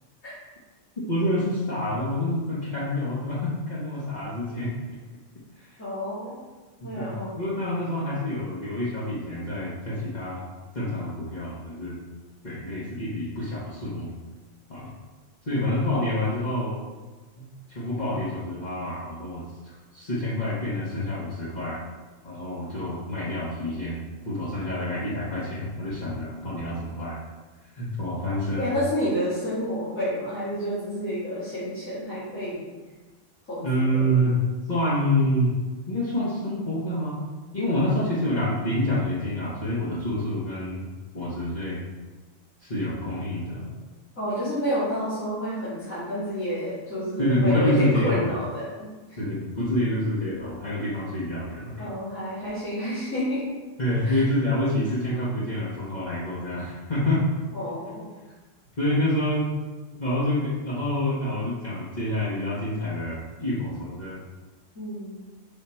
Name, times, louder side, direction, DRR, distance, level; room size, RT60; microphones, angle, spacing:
voice 1, 1.0-5.0 5.6-5.7 6.8-10.5 10.7-12.0 12.4-14.1 14.7-14.9 15.4-16.8 17.4-21.8 22.2-27.2 27.7-28.7 33.6-34.4 34.7-35.5 35.9-37.2 37.5-40.8 41.1-41.8 42.6-43.6 47.2-48.3 49.2-51.9 53.8-57.2 58.8-59.5 60.0-64.2, left 1 dB, 35° left, -9 dB, 1.4 m, -27 dB
voice 2, 5.8-6.3 6.8-7.3 28.6-32.6 33.5-34.1 44.2-49.2 51.8-53.4 54.0-54.2 57.5-58.1 64.7-65.2, equal, 80° left, -13 dB, 2.7 m, -29 dB
5.6 x 5.6 x 4.4 m, 1.3 s
omnidirectional pair, 1.3 m